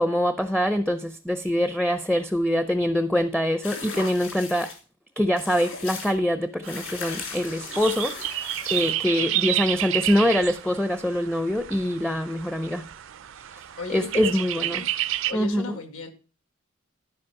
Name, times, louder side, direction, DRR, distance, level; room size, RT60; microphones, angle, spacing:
voice 1, 0.0-4.7 5.2-12.9 13.9-14.8 15.3-15.6, equal, 5° left, 0.5 m, -24 dB
sound 1, 3.6-4.8 5.4-6.1 6.6-9.0, left 5 dB, 60° left, 2.7 m, -37 dB
sound 2, 6.6-15.3, right 14 dB, 65° right, 0.4 m, -31 dB
voice 2, 13.8-14.9 15.3-16.1, left 4 dB, 80° left, 1.9 m, -36 dB
12.5 x 5.1 x 5.8 m
head